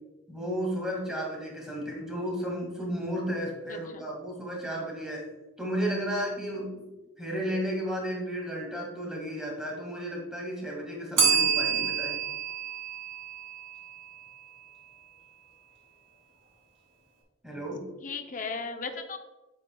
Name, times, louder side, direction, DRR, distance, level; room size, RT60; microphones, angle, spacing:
voice 1, 0.3-5.2 5.6-6.8 7.2-12.2 17.4-17.8, equal, 5° right, -3 dB, 2.0 m, -33 dB
voice 2, 3.7-4.0 18.0-19.2, left 4 dB, 40° left, 6 dB, 0.6 m, -36 dB
Bell, 11.2-14.0, right 6 dB, 70° right, 2.1 m, -27 dB
8.5 x 8.3 x 2.3 m, 1.1 s
head